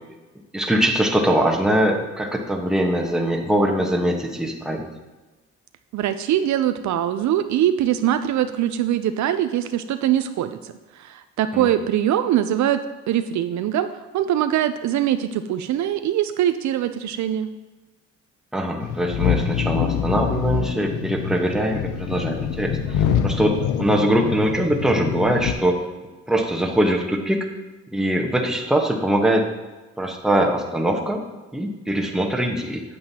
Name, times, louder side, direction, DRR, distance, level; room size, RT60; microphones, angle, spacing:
voice 1, 0.5-4.8 11.5-11.7 18.5-25.8 26.3-27.5 27.9-29.5 30.0-31.2 31.5-32.8, right 1 dB, ahead, 1 dB, 1.1 m, -22 dB
voice 2, 5.9-13.9 14.1-17.5, right 11 dB, 70° right, 10 dB, 0.5 m, -22 dB
sound 1, 18.8-25.5, left 8 dB, 90° left, 0.6 m, -25 dB
8.7 x 7.9 x 2.8 m, 1.2 s
cardioid pair, 90°, 30 cm